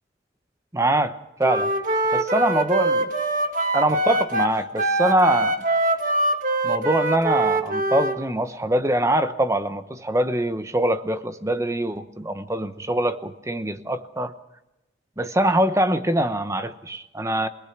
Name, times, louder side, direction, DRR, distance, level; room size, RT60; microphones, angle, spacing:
voice 1, 0.7-1.7 2.1-3.1 3.7-5.6 6.6-14.3 15.2-17.5, right 1 dB, 15° right, 10 dB, 0.9 m, -23 dB
Wind instrument woodwind instrument, 1.4-8.2, right 1 dB, 45° right, 1.5 m, -23 dB
24.5 x 18.5 x 6.0 m, 0.94 s
head